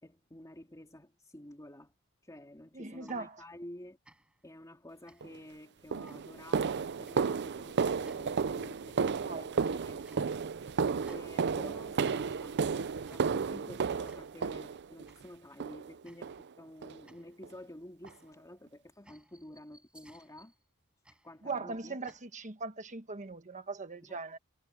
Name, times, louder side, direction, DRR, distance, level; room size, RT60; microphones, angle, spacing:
voice 1, 0.0-1.9 2.2-4.0 4.4-10.0 11.1-12.6 13.1-20.5 21.2-22.0 24.1-24.2, left 1 dB, 15° left, 3.5 m, -51 dB
voice 2, 2.7-3.4 9.2-9.5 9.8-10.2 21.4-24.4, right 3 dB, 35° right, 1.4 m, -40 dB
sound 1, 3.0-3.8 4.0-4.5 5.1-5.5 6.1-6.5 7.1-7.4 8.1-8.5 9.1-9.6 10.0-10.6 11.0-11.7 12.0-12.6 13.1-13.5 14.1-14.5 15.1-15.4 16.0-16.5 17.1-22.2, right 1 dB, 5° right, 5.8 m, -62 dB
sound 2, 5.2-5.4 5.9-15.1 15.6-15.9 16.2-16.4 16.8-17.0 17.4-17.5 18.0-18.1, right 5 dB, 55° right, 0.5 m, -33 dB
head